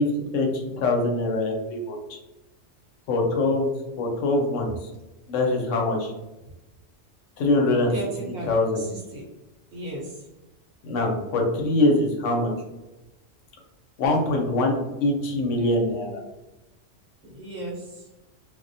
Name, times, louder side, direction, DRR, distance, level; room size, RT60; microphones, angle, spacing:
voice 1, 0.0-2.2 3.1-3.7 4.0-4.9 5.3-6.1 7.4-7.9 8.5-8.8 10.8-12.5 14.0-14.8 15.0-16.2, left 2 dB, 80° left, 1 dB, 0.9 m, -23 dB
voice 2, 7.9-8.5 8.8-9.2 9.7-10.3 17.2-18.0, right 2 dB, 55° right, -3 dB, 0.9 m, -35 dB
2.3 x 2.1 x 2.5 m, 0.99 s
omnidirectional pair, 1.3 m